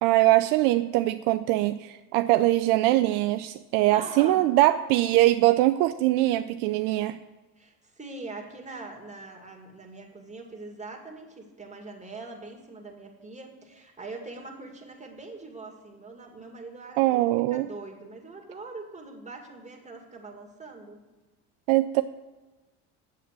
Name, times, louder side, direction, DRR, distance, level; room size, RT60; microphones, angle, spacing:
voice 1, 0.0-7.2 17.0-17.7 21.7-22.0, right 16 dB, 65° right, 9 dB, 0.5 m, -22 dB
voice 2, 3.9-4.4 7.6-21.0, right 3 dB, 15° right, 1 dB, 2.2 m, -42 dB
7.7 x 7.6 x 6.2 m, 1.2 s
hypercardioid pair, 70°, 44 cm